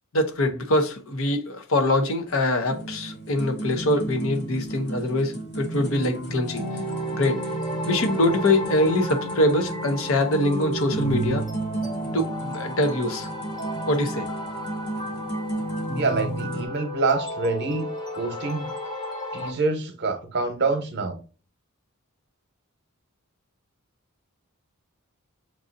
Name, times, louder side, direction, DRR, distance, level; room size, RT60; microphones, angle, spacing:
voice 1, 0.1-6.6 7.2-7.4 7.9-11.4 12.1-13.3 13.9-14.3, left 1 dB, 65° left, 0.7 m, -23 dB
sound 1, 2.7-16.7, right 2 dB, 50° left, 1.1 m, -32 dB
sound 2, 6.3-19.5, left 1 dB, 20° left, 1.0 m, -35 dB
voice 2, 15.9-17.9 18.1-18.7 19.3-21.2, right 3 dB, 50° right, 0.9 m, -26 dB
6.1 x 2.6 x 2.5 m
head